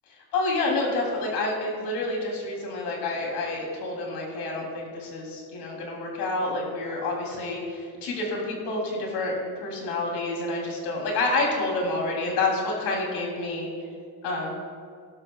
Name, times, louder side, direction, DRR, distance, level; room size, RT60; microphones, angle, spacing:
voice 1, 0.3-13.7 14.2-14.5, left 2 dB, 80° left, -1 dB, 3.3 m, -28 dB
17.0 x 12.0 x 2.4 m, 2.1 s
cardioid pair, 110°, 39 cm